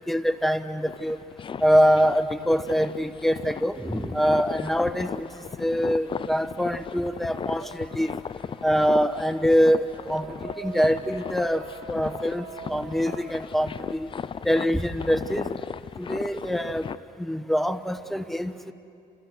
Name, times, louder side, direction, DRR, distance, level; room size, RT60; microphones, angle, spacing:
voice 1, 0.1-1.2 1.6-5.3 5.6-8.1 8.6-10.2 10.6-14.1 14.4-15.5 16.0-16.9 17.2-18.7, equal, ahead, 8 dB, 1.2 m, -24 dB
sound 1, 0.8-17.0, left 7 dB, 30° left, 0.5 m, -37 dB
sound 2, 5.4-6.6 6.9-14.7, right 5 dB, 90° right, 4.4 m, -44 dB
29.5 x 27.5 x 6.1 m, 2.5 s
cardioid pair, 110°, 17 cm